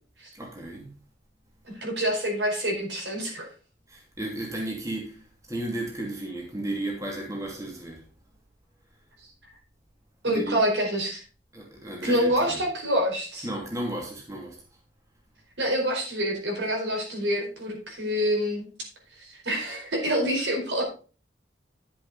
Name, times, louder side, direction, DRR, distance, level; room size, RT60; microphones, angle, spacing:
voice 1, 0.3-0.9 3.9-5.2 5.5-8.0 10.2-10.6 11.5-12.6 13.4-14.6, right 1 dB, 20° right, 2.6 m, -34 dB
voice 2, 1.7-3.5 10.2-11.2 12.0-13.5 15.6-18.7 19.2-20.8, equal, 70° right, 4.7 m, -26 dB
11.0 x 7.5 x 4.1 m
head